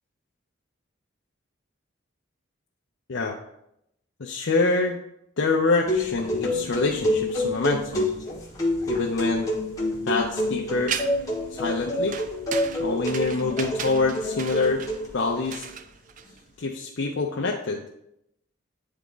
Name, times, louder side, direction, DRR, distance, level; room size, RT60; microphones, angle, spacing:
voice 1, 4.2-5.0 5.4-8.1 8.9-9.5 10.1-11.0 11.5-12.2 12.8-14.8 15.1-15.6 16.6-17.8, left 3 dB, 70° left, 0 dB, 0.6 m, -25 dB
sound 1, 5.9-15.3, left 1 dB, 15° left, 1.3 m, -28 dB
sound 2, 10.9-11.4 12.1-16.6, right 7 dB, 40° right, 0.3 m, -35 dB
9.1 x 3.7 x 3.8 m, 0.80 s
head